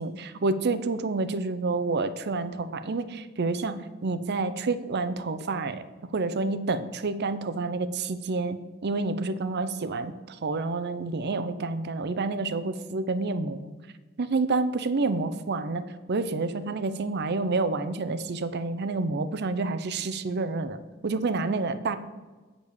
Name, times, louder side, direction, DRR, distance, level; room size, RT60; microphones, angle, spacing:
voice 1, 0.0-5.8 6.1-8.6 8.8-13.7 14.2-22.0, right 3 dB, 55° right, 12 dB, 0.6 m, -29 dB
8.5 x 5.2 x 6.3 m, 1.3 s
head